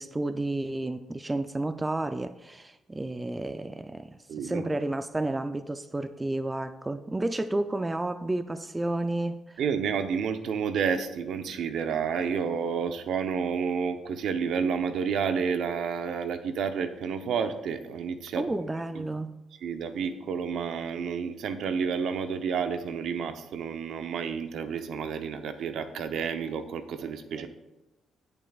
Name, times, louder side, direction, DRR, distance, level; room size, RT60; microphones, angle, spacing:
voice 1, 0.0-9.6 18.4-19.3, right 2 dB, 15° right, 10 dB, 0.4 m, -31 dB
voice 2, 4.3-4.6 9.6-18.4 19.0-19.1 19.6-27.5, right 6 dB, 75° right, 8 dB, 0.8 m, -30 dB
16.5 x 7.1 x 2.4 m, 1.0 s
cardioid pair, 90°, 0 cm